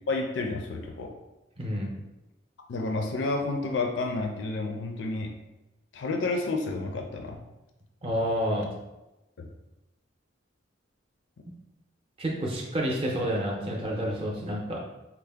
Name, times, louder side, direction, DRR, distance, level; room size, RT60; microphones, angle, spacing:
voice 1, 0.1-1.1 2.7-5.3 5.9-7.4 9.4-9.5, left 3 dB, 65° left, 3 dB, 0.4 m, -30 dB
voice 2, 1.6-1.9 8.0-8.7 12.2-14.8, equal, 30° right, -2 dB, 0.5 m, -29 dB
4.5 x 2.0 x 3.3 m, 0.98 s
head